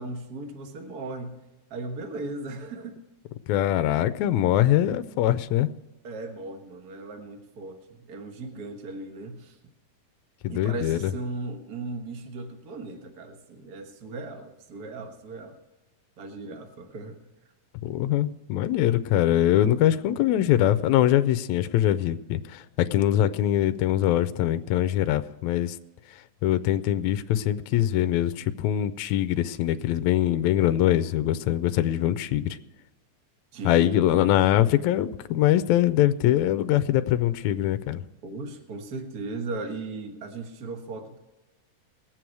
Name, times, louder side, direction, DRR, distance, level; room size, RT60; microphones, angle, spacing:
voice 1, 0.0-1.4 1.7-3.0 6.0-9.6 10.5-15.6 16.2-17.2 33.5-34.2 38.2-41.2, right 2 dB, 45° right, 5 dB, 1.2 m, -37 dB
voice 2, 3.5-5.7 10.4-11.1 17.8-25.7 26.4-32.6 33.6-38.0, left 12 dB, 80° left, 12 dB, 1.7 m, -23 dB
20.5 x 7.7 x 4.7 m, 1.1 s
omnidirectional pair, 3.7 m